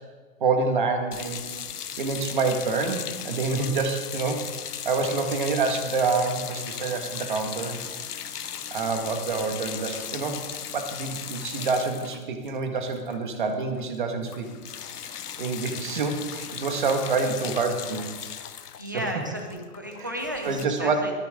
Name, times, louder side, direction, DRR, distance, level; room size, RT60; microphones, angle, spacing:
voice 1, 0.4-1.4 2.0-4.4 4.8-7.8 8.7-10.4 10.7-14.5 15.4-18.1 18.9-19.0 20.0-20.1 20.4-21.0, right 4 dB, 30° right, 5 dB, 1.8 m, -27 dB
sound 1, 1.1-13.5 13.8-14.0 14.2-20.7, left 8 dB, 80° left, 1.0 m, -37 dB
voice 2, 18.8-21.1, equal, 15° right, 2 dB, 0.7 m, -34 dB
20.0 x 14.5 x 3.8 m, 1.4 s
hypercardioid pair, 175°, 46 cm